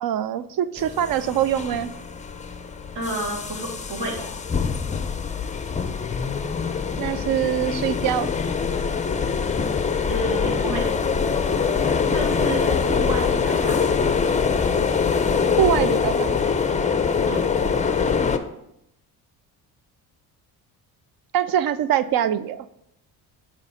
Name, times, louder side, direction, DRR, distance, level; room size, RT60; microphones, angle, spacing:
voice 1, 0.0-1.9 7.0-8.3 15.6-16.4 21.3-22.6, right 10 dB, 45° right, 15 dB, 0.5 m, -23 dB
sound 1, 0.8-18.4, left 6 dB, 15° left, 0.5 m, -24 dB
voice 2, 2.9-4.2 10.1-10.9 12.1-13.8 17.3-17.5, right 1 dB, 60° right, -1 dB, 2.1 m, -30 dB
8.1 x 3.0 x 5.6 m, 0.82 s
hypercardioid pair, 55°, 49 cm